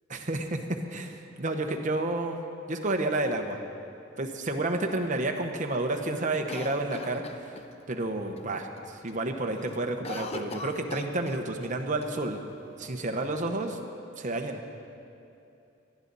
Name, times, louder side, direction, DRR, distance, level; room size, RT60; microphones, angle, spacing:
voice 1, 0.1-2.4 2.7-3.6 4.2-7.6 7.9-8.7 9.0-12.4 12.8-13.8 14.2-14.6, right 2 dB, 40° right, 4 dB, 1.0 m, -30 dB
Cough, 6.5-8.0 8.4-8.5 8.8-9.2 9.5-11.7 12.0-12.1 12.8-13.6, left 3 dB, 30° left, 0.6 m, -41 dB
19.0 x 12.5 x 4.1 m, 2.7 s
head